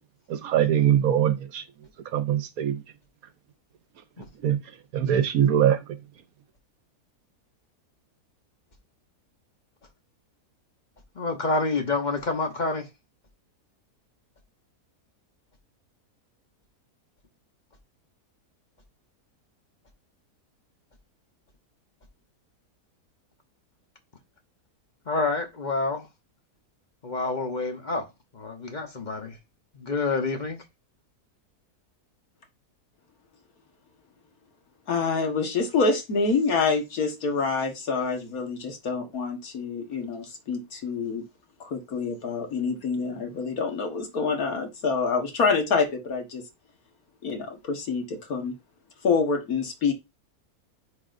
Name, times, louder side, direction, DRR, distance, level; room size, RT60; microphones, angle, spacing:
voice 1, 0.3-1.6 2.1-2.8 4.4-4.6 4.9-5.8, right 10 dB, 70° right, 1.1 m, -22 dB
voice 2, 11.1-12.9 25.1-26.1 27.0-28.1 28.3-29.4 29.7-30.6, left 3 dB, 35° left, 0.9 m, -28 dB
voice 3, 34.9-41.2 41.6-46.4 47.2-48.6 49.0-49.9, left 4 dB, 65° left, 1.9 m, -26 dB
9.6 x 4.1 x 2.6 m
omnidirectional pair, 1.7 m